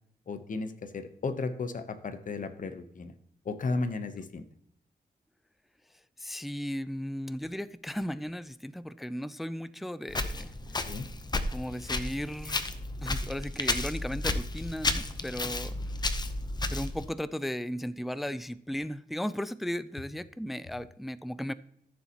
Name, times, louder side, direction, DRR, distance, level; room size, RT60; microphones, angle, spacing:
voice 1, 0.3-3.1 3.4-4.4 10.8-11.1, left 3 dB, 50° left, 0.9 m, -34 dB
voice 2, 6.2-10.5 11.5-12.6 13.0-15.7 16.7-21.5, equal, ahead, 0.3 m, -36 dB
Walk footsteps, 10.1-17.1, left 2 dB, 25° left, 0.7 m, -32 dB
14.0 x 7.0 x 2.9 m
wide cardioid pair, 115°, 17 cm